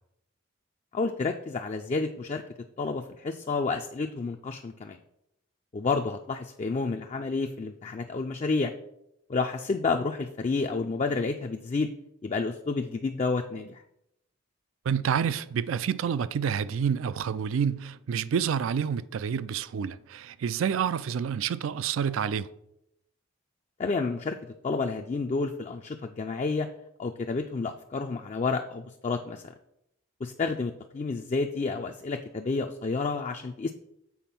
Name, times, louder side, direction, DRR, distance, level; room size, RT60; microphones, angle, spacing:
voice 1, 0.9-2.4 2.8-5.0 5.7-8.7 9.3-11.9 12.2-13.8 23.8-24.4 24.6-26.7 27.0-29.5 30.2-33.7, left 4 dB, 35° left, 0.3 m, -30 dB
voice 2, 14.9-22.5, right 7 dB, 85° right, 0.4 m, -28 dB
7.1 x 4.2 x 5.8 m
head